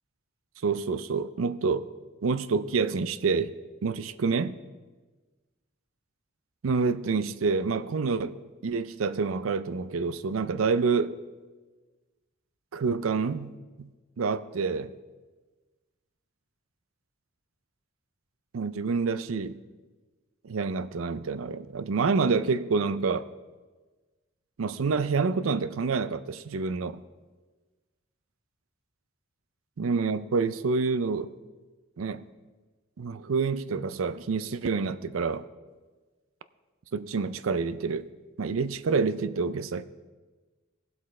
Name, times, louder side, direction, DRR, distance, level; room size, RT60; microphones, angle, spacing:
voice 1, 0.6-1.9 2.2-3.5 3.8-4.6 6.6-8.3 8.6-11.1 12.7-13.5 13.8-13.9 14.2-14.9 18.5-19.6 20.4-23.3 24.6-27.0 29.8-31.3 32.0-32.2 33.0-35.5 36.9-38.1 38.4-39.9, right 4 dB, 85° right, 14 dB, 0.5 m, -27 dB
19.0 x 7.9 x 3.2 m, 1.3 s
head